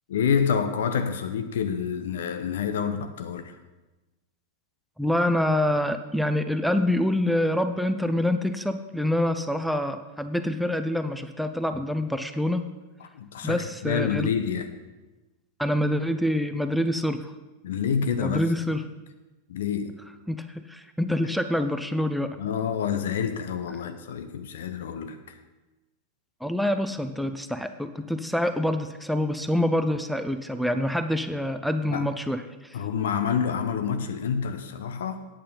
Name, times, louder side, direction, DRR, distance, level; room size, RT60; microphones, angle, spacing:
voice 1, 0.1-3.6 13.0-14.7 17.6-18.5 19.5-20.0 22.4-25.4 31.9-32.1 32.7-35.3, left 7 dB, 60° left, 0.8 m, -28 dB
voice 2, 5.0-12.7 13.4-14.3 15.6-17.3 18.2-18.8 20.3-22.4 26.4-32.4, left 1 dB, ahead, 0.6 m, -26 dB
8.8 x 8.6 x 5.5 m
figure-of-eight pair, 90°, 0 cm